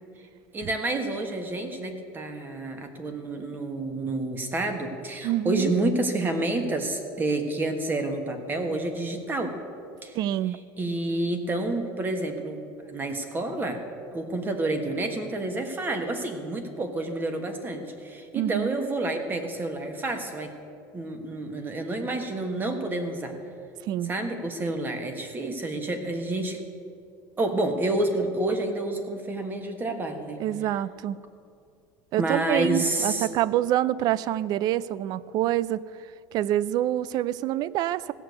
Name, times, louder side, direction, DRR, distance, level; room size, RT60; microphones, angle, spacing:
voice 1, 0.5-9.5 10.0-10.2 10.8-12.6 12.9-13.8 14.1-20.5 20.9-23.4 24.0-26.6 27.4-30.4 32.2-33.3, right 2 dB, 20° right, 6 dB, 1.4 m, -29 dB
voice 2, 5.2-5.7 10.1-10.6 18.3-18.8 23.9-24.1 30.4-31.2 32.1-35.8 36.3-38.1, right 13 dB, 45° right, 19 dB, 0.4 m, -26 dB
16.0 x 6.8 x 8.0 m, 2.5 s
supercardioid pair, 135°, 9 cm